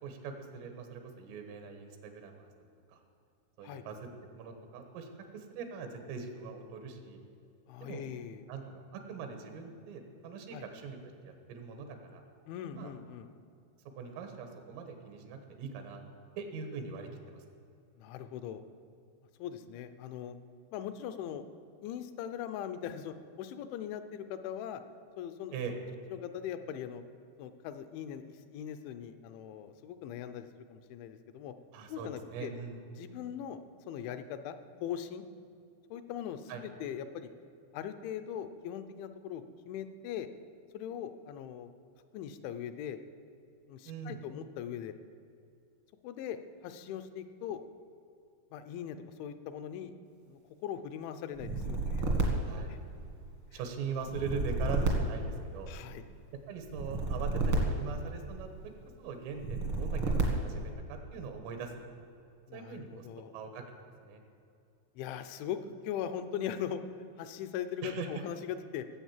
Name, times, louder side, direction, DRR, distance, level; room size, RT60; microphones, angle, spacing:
voice 1, 0.0-2.5 2.9-3.0 3.6-4.0 4.3-5.1 5.3-7.2 7.8-8.1 8.5-11.0 11.2-12.2 12.7-12.9 14.0-16.0 16.4-17.4 25.5-25.7 31.7-32.8 36.5-36.6 43.9-44.2 52.4-52.7 53.5-55.7 56.5-58.5 59.0-61.9 62.5-63.1 63.3-63.6 64.0-64.2 67.8-68.1, right 5 dB, 90° right, 5 dB, 4.0 m, -41 dB
voice 2, 7.7-8.4 10.5-10.6 12.4-13.3 18.0-18.6 19.4-20.4 20.7-21.4 21.8-24.8 25.2-25.6 26.1-27.0 27.4-31.5 31.9-32.5 33.0-34.6 34.8-35.2 35.9-37.3 37.7-40.3 40.7-41.7 42.1-43.0 43.7-44.9 46.0-47.6 48.5-49.9 50.3-52.8 53.5-53.6 55.7-56.0 62.5-63.3 65.0-66.8 67.2-68.9, left 9 dB, 80° left, 10 dB, 2.9 m, -40 dB
sound 1, 51.4-53.3 54.0-56.0 56.7-58.6 59.4-60.7, right 3 dB, 70° right, 1.2 m, -32 dB
17.5 x 8.0 x 7.3 m, 2.5 s
omnidirectional pair, 5.7 m